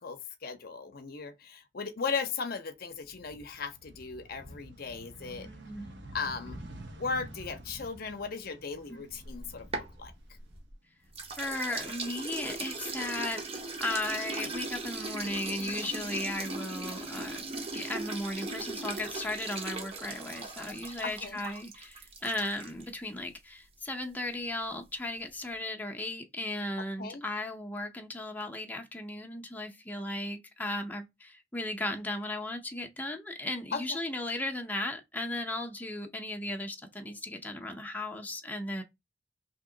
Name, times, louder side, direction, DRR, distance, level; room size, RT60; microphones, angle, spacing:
voice 1, 0.0-5.5 6.1-6.6 6.9-10.1 15.8-15.9 21.0-21.4 27.0-27.2 33.7-34.0, left 5 dB, 55° left, 0.6 m, -37 dB
sound 1, 2.9-11.0 11.4-12.5, right 1 dB, 75° right, 1.0 m, -49 dB
voice 2, 5.4-5.9 8.9-9.1 11.4-13.4 13.8-17.4 17.7-38.8, left 1 dB, 10° left, 0.6 m, -36 dB
sound 2, 9.1-10.7 11.1-22.9, right 3 dB, 35° right, 0.7 m, -38 dB
3.0 x 2.8 x 3.7 m
head